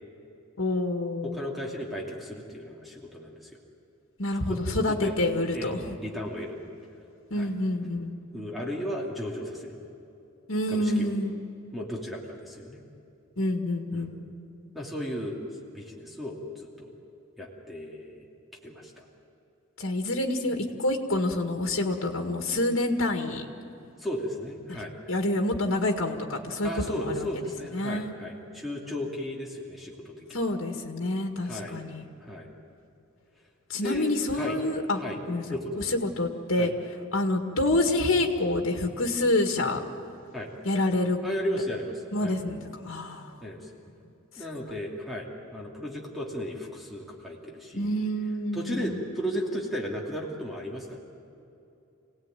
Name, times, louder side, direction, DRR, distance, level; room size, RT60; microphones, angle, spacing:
voice 1, 0.6-1.4 4.2-5.9 7.3-8.1 10.5-11.4 13.4-14.2 19.8-23.5 24.7-24.8 25.1-27.3 27.7-28.1 30.3-32.0 33.7-35.0 35.3-35.4 35.8-36.7 37.1-39.8 40.6-41.2 42.1-43.3 47.7-49.0, left 1 dB, 75° left, 3 dB, 2.0 m, -27 dB
voice 2, 1.2-3.5 4.5-5.2 5.5-6.6 7.4-7.5 8.3-9.8 10.7-11.1 11.7-12.8 13.9-14.1 14.7-15.4 15.7-16.9 17.4-18.3 18.6-19.0 24.0-25.0 26.6-30.4 31.4-31.8 32.2-32.5 33.8-34.6 35.0-35.9 36.6-36.7 40.3-40.5 41.2-42.3 43.4-44.0 44.4-47.9 48.5-51.0, equal, ahead, -3 dB, 2.7 m, -35 dB
27.0 x 18.0 x 9.2 m, 2.8 s
head